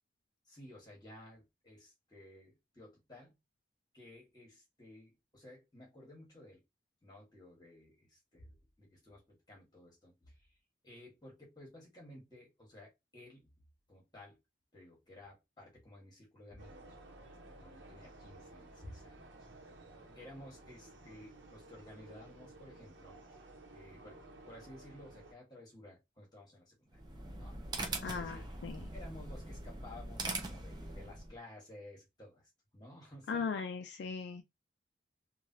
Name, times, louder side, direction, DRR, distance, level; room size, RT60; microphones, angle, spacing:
voice 1, 0.4-3.4 3.9-6.6 7.0-10.6 10.8-13.5 13.9-14.4 14.7-17.0 17.2-19.4 20.1-23.4 23.7-24.2 24.4-27.0 27.4-27.6 27.9-28.6 28.9-33.5, left 1 dB, 20° left, 1.3 m, -55 dB
sound 1, 16.6-25.3, right 2 dB, 90° right, 0.8 m, -55 dB
sound 2, 26.9-31.4, right 2 dB, 25° right, 0.5 m, -42 dB
voice 2, 28.0-28.9 33.3-34.4, left 5 dB, 70° left, 0.3 m, -38 dB
3.2 x 2.3 x 2.7 m
head